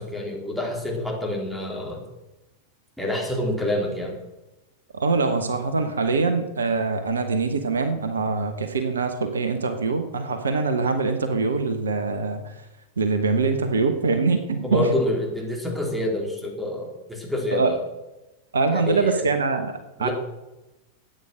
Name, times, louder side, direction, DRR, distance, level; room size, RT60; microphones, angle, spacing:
voice 1, 0.0-2.0 3.0-4.2 14.6-17.8 18.7-19.2 20.0-20.1, left 1 dB, ahead, -1 dB, 4.0 m, -27 dB
voice 2, 4.9-12.5 13.0-14.9 17.5-17.8 18.5-20.1, right 4 dB, 70° right, 8 dB, 1.2 m, -23 dB
13.5 x 9.1 x 6.3 m, 1.0 s
figure-of-eight pair, 90°, 0 cm